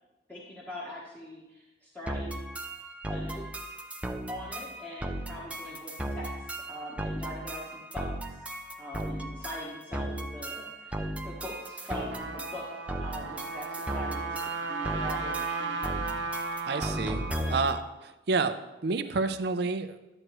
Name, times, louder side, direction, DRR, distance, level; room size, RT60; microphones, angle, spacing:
voice 1, 0.3-2.5 3.1-3.7 4.3-8.4 8.8-12.7 13.0-14.4 14.7-16.1 16.3-17.7, equal, 10° left, -6 dB, 1.1 m, -42 dB
sound 1, 2.1-17.8, right 1 dB, 5° right, 0.5 m, -36 dB
Trumpet, 11.8-17.8, right 4 dB, 80° right, 0.9 m, -35 dB
voice 2, 16.7-18.6 18.8-20.0, right 4 dB, 60° right, 10 dB, 0.5 m, -29 dB
11.0 x 7.8 x 3.1 m, 1.1 s
head